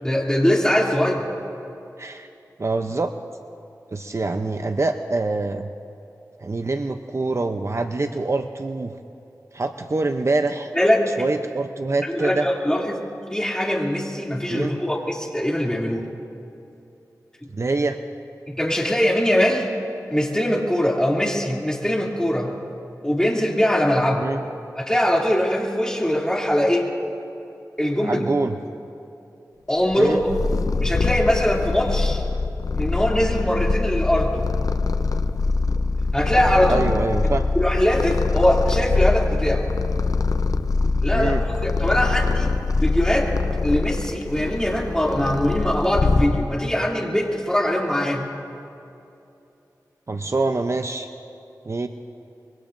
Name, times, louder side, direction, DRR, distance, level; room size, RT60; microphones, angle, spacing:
voice 1, 0.0-1.3 10.7-11.0 12.1-13.0 13.3-16.1 18.5-19.7 20.1-22.5 23.0-24.3 24.8-26.9 27.8-28.2 29.7-30.2 30.8-32.2 32.7-34.5 36.1-36.9 37.6-39.7 41.0-43.3 43.6-48.2, equal, 10° left, -2 dB, 2.7 m, -22 dB
voice 2, 2.6-3.1 3.9-5.7 6.4-8.9 9.5-10.7 11.2-12.5 14.5-14.7 17.5-18.0 24.2-24.4 28.0-28.6 30.0-30.2 36.7-37.4 41.1-41.4 50.1-51.1 51.6-51.9, right 3 dB, 45° right, 7 dB, 0.6 m, -25 dB
Purr, 29.9-46.7, left 3 dB, 65° left, 0.6 m, -23 dB
24.5 x 23.0 x 2.6 m, 2.7 s
wide cardioid pair, 60°, 7 cm